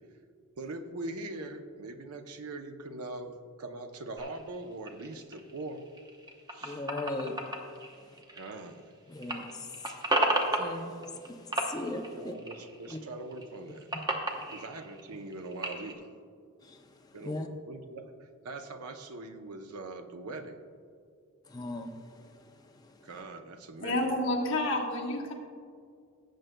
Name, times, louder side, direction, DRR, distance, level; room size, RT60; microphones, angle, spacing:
voice 1, 0.6-5.9 6.5-6.9 8.3-8.8 12.1-13.9 14.5-16.1 17.1-20.6 23.0-24.0, right 2 dB, 85° right, 7 dB, 0.7 m, -42 dB
sound 1, 4.2-8.9 9.2-11.3 11.5-13.0 13.3-15.9, right 1 dB, 20° right, 0.8 m, -34 dB
voice 2, 6.6-7.4 9.1-12.4 12.9-13.0 14.4-14.5 16.6-17.5 21.5-23.1, left 2 dB, 15° left, 3 dB, 0.5 m, -40 dB
voice 3, 23.8-25.3, left 1 dB, 60° left, -2 dB, 1.4 m, -29 dB
16.5 x 7.8 x 2.2 m, 2.2 s
head